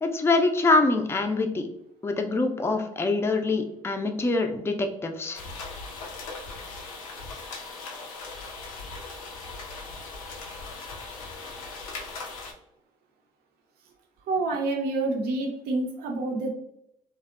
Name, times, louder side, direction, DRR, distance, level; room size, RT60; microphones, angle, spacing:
voice 1, 0.0-1.7 2.0-5.4, left 3 dB, 15° left, 4 dB, 0.4 m, -24 dB
sound 1, 5.3-12.5, left 3 dB, 90° left, 0.4 m, -39 dB
voice 2, 14.3-16.5, right 2 dB, 65° right, 2 dB, 0.5 m, -28 dB
2.5 x 2.1 x 2.3 m, 0.77 s
hypercardioid pair, 55°, 17 cm